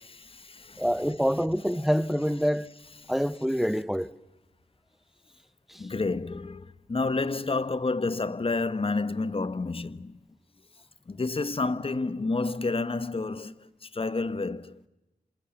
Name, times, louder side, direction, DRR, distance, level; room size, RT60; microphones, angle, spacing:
voice 1, 0.1-0.9 3.0-3.1 5.7-10.2 11.1-14.8, left 3 dB, 40° left, 1.3 m, -30 dB
voice 2, 0.8-2.7 3.1-4.1 5.7-5.8, equal, ahead, 1.1 m, -26 dB
28.0 x 27.5 x 7.2 m
cardioid pair, 50°, 15 cm